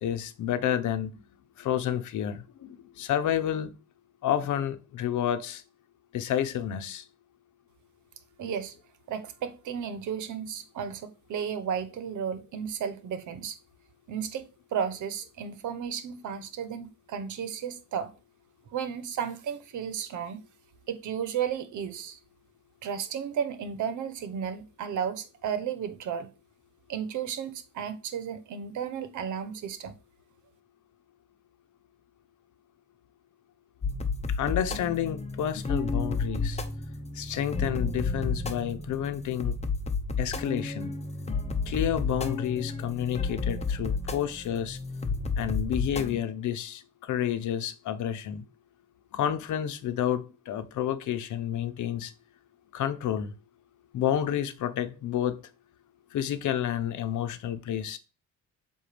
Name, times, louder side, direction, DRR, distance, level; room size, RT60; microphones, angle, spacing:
voice 1, 0.0-1.1 1.6-3.7 4.2-5.6 6.1-7.0 34.3-36.6 37.2-39.5 40.2-40.9 41.7-44.8 45.4-48.4 49.1-52.1 52.7-53.3 53.9-55.4 56.1-58.0, left 10 dB, 75° left, 0.9 m, -30 dB
voice 2, 8.4-8.7 9.1-13.6 14.1-18.1 18.7-20.4 20.9-22.2 22.8-26.3 26.9-29.9, right 8 dB, 80° right, 1.0 m, -33 dB
sound 1, 33.8-46.2, left 4 dB, 20° left, 0.9 m, -31 dB
7.8 x 2.6 x 5.0 m
cardioid pair, 90°, 30 cm